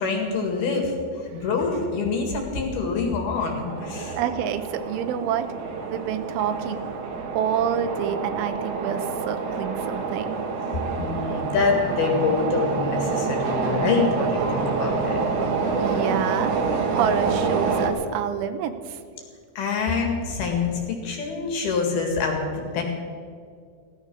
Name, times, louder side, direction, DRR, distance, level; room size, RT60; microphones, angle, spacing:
voice 1, 0.0-4.2 11.0-15.2 19.6-22.8, left 4 dB, 60° left, 2 dB, 3.6 m, -25 dB
sound 1, 3.7-17.9, right 4 dB, 60° right, 2.2 m, -27 dB
voice 2, 4.2-5.6 5.9-7.1 7.3-10.4 15.8-16.5 16.9-19.0, right 9 dB, 85° right, 9 dB, 3.2 m, -28 dB
16.0 x 13.5 x 6.2 m, 2.2 s
omnidirectional pair, 5.5 m